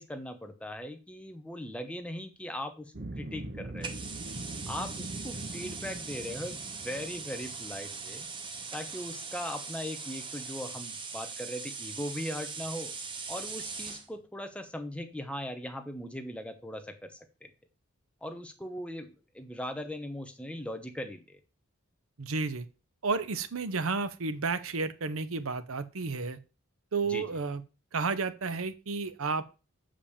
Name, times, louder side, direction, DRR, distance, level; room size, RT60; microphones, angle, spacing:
voice 1, 0.0-3.9 4.7-8.2 8.7-12.9 13.3-17.5 18.2-21.4 27.0-27.2, left 1 dB, 5° left, 6 dB, 0.9 m, -39 dB
sound 1, 2.9-9.2, right 1 dB, 45° right, 1.0 m, -43 dB
sound 2, 3.8-14.1, right 4 dB, 20° right, 0.9 m, -40 dB
voice 2, 22.2-22.7 23.0-26.4 26.9-27.6 27.9-29.4, right 4 dB, 75° right, 13 dB, 0.8 m, -31 dB
6.9 x 5.1 x 7.2 m, 0.32 s
head